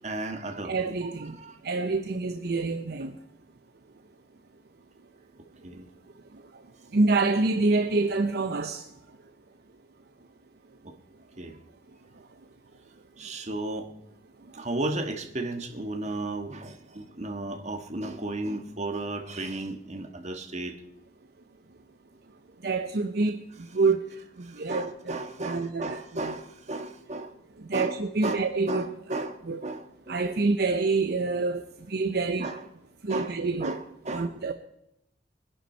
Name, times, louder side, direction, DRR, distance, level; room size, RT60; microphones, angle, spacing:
voice 1, 0.0-0.7 1.3-1.6 5.6-5.9 10.8-10.9 11.4-11.6 13.2-13.9 14.5-20.8 24.4-27.3 27.7-27.9 28.2-30.2 32.4-32.6 33.1-34.5, right 2 dB, 40° right, 1.6 m, -34 dB
voice 2, 0.6-1.4 1.6-3.1 6.9-8.8 22.6-23.4 23.7-24.1 24.4-26.3 27.7-28.8 29.5-29.6 30.1-31.6 31.9-32.5 33.0-33.8 34.1-34.5, right 3 dB, 60° right, 0.7 m, -27 dB
22.0 x 11.0 x 4.4 m
head